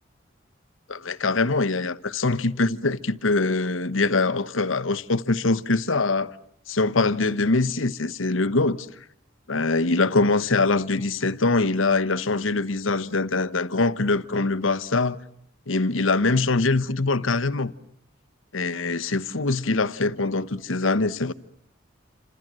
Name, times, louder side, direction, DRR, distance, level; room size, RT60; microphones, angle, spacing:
voice 1, 0.9-6.3 6.7-8.9 9.5-15.2 15.7-17.7 18.5-21.3, left 3 dB, 85° left, 1.1 m, -23 dB
29.0 x 26.0 x 7.6 m
head